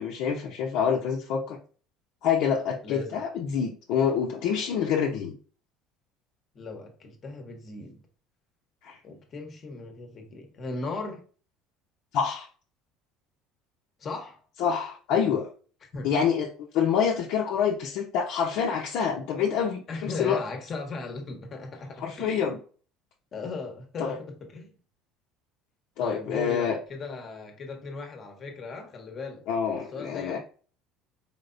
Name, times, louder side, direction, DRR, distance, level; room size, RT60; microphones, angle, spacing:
voice 1, 0.0-1.6 2.2-5.3 8.8-9.0 12.1-12.5 14.6-15.5 16.0-16.5 16.7-20.4 22.0-22.6 24.0-24.2 26.0-26.8 29.5-30.4, left 7 dB, 65° left, 0.8 m, -26 dB
voice 2, 2.8-3.2 6.5-8.0 9.0-11.2 14.0-14.4 15.9-16.1 19.9-22.5 23.3-24.7 26.0-29.4 29.9-30.4, left 3 dB, 30° left, 1.1 m, -37 dB
4.7 x 3.4 x 2.6 m
cardioid pair, 145°, 0 cm